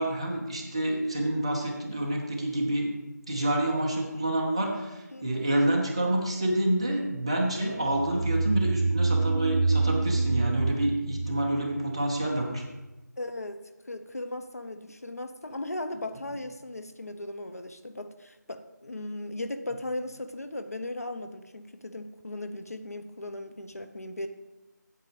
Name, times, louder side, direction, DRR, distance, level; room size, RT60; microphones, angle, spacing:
voice 1, 0.0-2.9 3.3-12.6, right 1 dB, 15° right, -1 dB, 0.9 m, -28 dB
voice 2, 5.1-5.4 13.2-13.6 13.9-24.3, left 1 dB, 55° left, 8 dB, 0.8 m, -37 dB
sound 1, 7.8-12.4, right 3 dB, 75° right, 0.4 m, -27 dB
8.5 x 8.3 x 5.0 m, 1.0 s
figure-of-eight pair, 170°, 10 cm